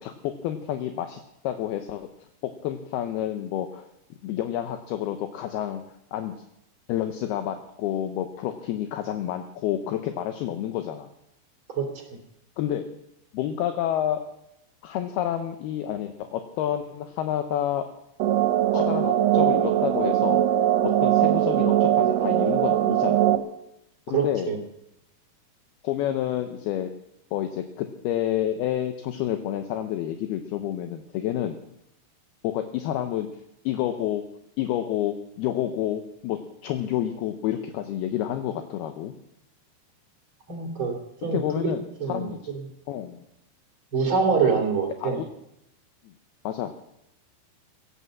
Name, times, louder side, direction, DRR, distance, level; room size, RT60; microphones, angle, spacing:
voice 1, 0.0-2.1 2.4-3.9 4.2-5.8 6.1-6.3 6.9-11.1 12.6-12.9 13.3-14.2 14.8-17.9 18.7-20.4 20.8-23.3 24.1-24.6 25.8-26.9 27.3-31.6 32.4-33.3 33.7-34.2 34.6-39.1 41.3-42.4 42.9-43.2 45.0-45.3 46.0-46.1 46.4-46.7, left 11 dB, 75° left, 7 dB, 2.7 m, -29 dB
sound 1, 18.2-23.4, right 12 dB, 75° right, 3.1 m, -21 dB
voice 2, 24.1-24.6 40.5-40.9 41.2-41.7 42.0-42.3 42.5-42.6 43.9-45.2, right 5 dB, 35° right, 2 dB, 3.1 m, -25 dB
17.0 x 11.5 x 7.5 m, 0.84 s
omnidirectional pair, 4.9 m